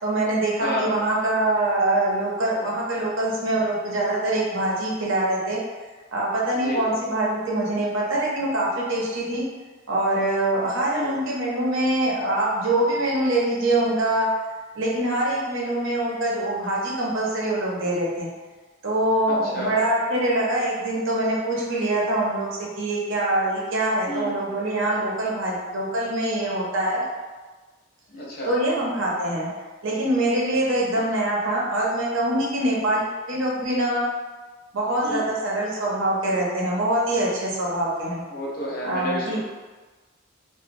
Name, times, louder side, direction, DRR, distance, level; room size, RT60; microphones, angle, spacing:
voice 1, 0.0-5.6 6.1-9.5 9.9-14.3 14.7-18.3 18.8-27.0 28.4-29.5 29.8-34.1 34.7-38.2 38.8-39.4, right 1 dB, 65° right, -4 dB, 0.6 m, -24 dB
voice 2, 0.6-0.9 6.6-6.8 10.9-11.2 19.3-19.8 24.1-24.4 28.1-28.5 30.9-31.1 35.0-35.3 38.3-39.4, equal, 45° left, -5 dB, 0.6 m, -30 dB
2.9 x 2.1 x 2.5 m, 1.3 s
head